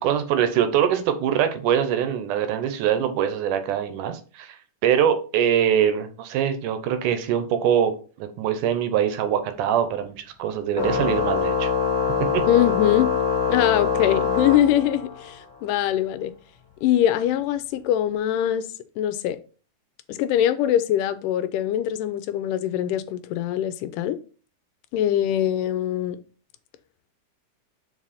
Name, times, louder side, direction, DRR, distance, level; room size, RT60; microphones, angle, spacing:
voice 1, 0.0-7.9 8.2-11.7 12.3-12.4, right 9 dB, 80° right, 2.4 m, -23 dB
Organ, 10.8-15.3, left 6 dB, 75° left, 1.1 m, -24 dB
voice 2, 12.5-13.1 13.5-16.3 16.8-18.7 19.0-19.4 20.1-24.2 24.9-26.2, left 11 dB, 90° left, 2.3 m, -23 dB
6.2 x 4.7 x 4.2 m
omnidirectional pair, 3.7 m